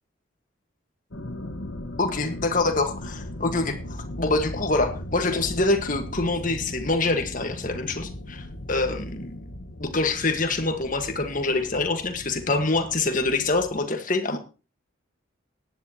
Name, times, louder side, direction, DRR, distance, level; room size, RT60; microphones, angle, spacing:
sound 1, 1.1-13.8, left 1 dB, 75° left, 1.6 m, -38 dB
voice 1, 2.0-9.4 9.8-14.4, left 3 dB, 40° left, 6 dB, 1.7 m, -25 dB
17.5 x 10.5 x 3.0 m, 0.33 s
head